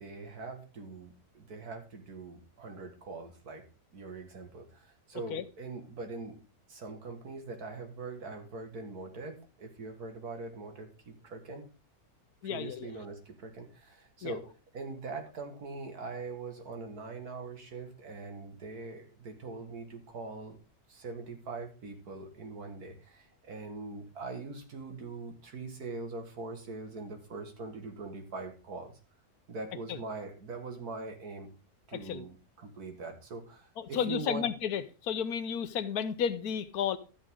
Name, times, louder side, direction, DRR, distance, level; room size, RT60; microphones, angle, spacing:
voice 1, 0.0-3.6 3.9-6.4 6.7-11.7 12.4-20.6 20.9-28.9 29.5-31.5 31.9-34.5, right 3 dB, 80° right, 2.3 m, -42 dB
voice 2, 12.4-12.9 14.2-14.3 29.9-30.0 31.9-32.3 33.8-37.0, left 8 dB, 75° left, 1.3 m, -33 dB
12.5 x 7.6 x 3.7 m
omnidirectional pair, 1.6 m